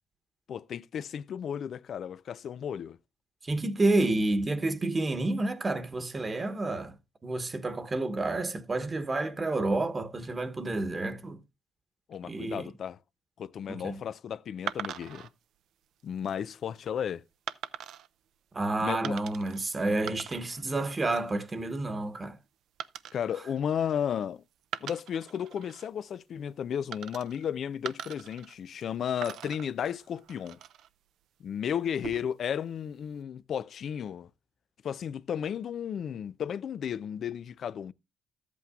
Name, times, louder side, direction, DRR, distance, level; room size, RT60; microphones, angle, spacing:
voice 1, 0.5-3.0 12.1-13.0 13.4-15.3 16.0-17.2 18.8-19.2 23.1-24.4 24.8-30.6 31.4-34.3 34.8-37.9, left 8 dB, 60° left, 0.4 m, -34 dB
voice 2, 3.4-6.9 7.2-11.4 12.3-12.7 13.7-14.0 18.5-22.4, right 2 dB, 30° right, 1.1 m, -29 dB
sound 1, 14.7-15.3 16.0-16.3 17.5-18.1 19.0-19.6 19.9-20.6 20.9-21.3 22.8-24.3 24.6-25.9 26.9-27.5 27.9-28.9 29.2-30.9 31.8-32.5, right 10 dB, 80° right, 0.5 m, -41 dB
13.5 x 8.3 x 2.3 m
cardioid pair, 90°, 0 cm